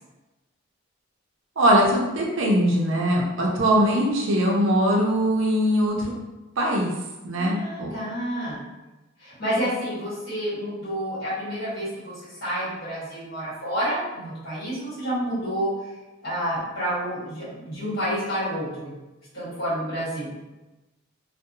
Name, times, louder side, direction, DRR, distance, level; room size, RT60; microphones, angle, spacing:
voice 1, 1.6-6.0 6.6-6.9 7.2-7.9, equal, 65° right, -2 dB, 0.5 m, -21 dB
voice 2, 7.4-8.6 9.2-15.7 16.2-18.9 19.3-20.3, equal, 45° left, -10 dB, 1.4 m, -29 dB
2.6 x 2.1 x 2.6 m, 1.1 s
head